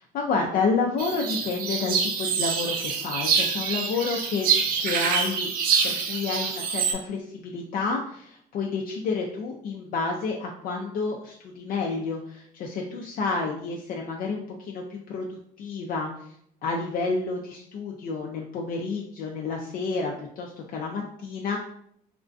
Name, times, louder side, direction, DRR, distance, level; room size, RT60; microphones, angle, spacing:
voice 1, 0.1-4.5 4.8-5.5 5.8-16.1 16.6-21.6, left 4 dB, 55° left, 0 dB, 0.4 m, -30 dB
sound 1, 1.0-6.9, right 6 dB, 60° right, 0.4 m, -26 dB
2.3 x 2.1 x 2.4 m, 0.68 s
cardioid pair, 110°, 17 cm